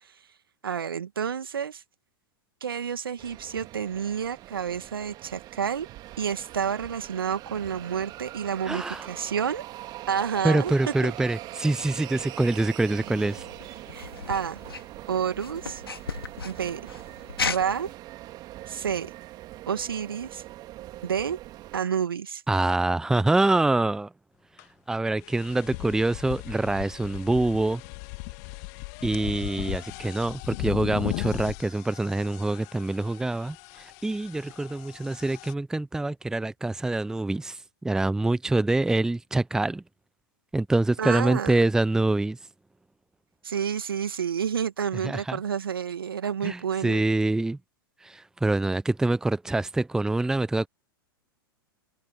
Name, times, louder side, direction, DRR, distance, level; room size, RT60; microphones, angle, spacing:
voice 1, 0.6-1.8 2.6-5.9 6.2-9.6 10.1-10.7 11.0-11.1 13.9-14.6 15.1-15.8 16.4-16.8 17.4-17.9 18.7-19.1 19.7-20.4 21.0-21.4 21.7-22.4 41.0-41.6 43.4-47.0, right 7 dB, 70° right, 2.4 m, -29 dB
sound 1, 3.2-21.8, right 16 dB, 35° right, 2.6 m, -42 dB
voice 2, 8.7-9.1 10.4-13.4 22.5-24.1 24.9-27.8 29.0-39.8 40.5-42.4 45.0-45.4 46.4-47.6 48.0-50.7, right 2 dB, 5° right, 0.9 m, -25 dB
sound 2, 13.0-17.9, left 5 dB, 80° left, 2.5 m, -36 dB
sound 3, 24.6-24.7 25.2-35.5, left 31 dB, 45° left, 2.9 m, -38 dB
figure-of-eight pair, 100°, 12 cm